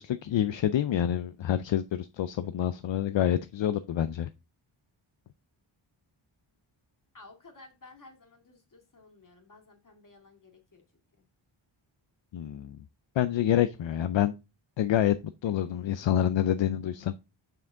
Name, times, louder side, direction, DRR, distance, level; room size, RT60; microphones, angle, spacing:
voice 1, 0.0-4.3 12.3-12.8 13.2-14.3 14.8-15.2 15.4-17.1, left 11 dB, 65° left, 0.5 m, -27 dB
voice 2, 7.1-10.8 11.2-11.3 15.4-16.6, left 3 dB, 40° left, 2.2 m, -55 dB
7.0 x 6.0 x 3.7 m
wide cardioid pair, 140°, 49 cm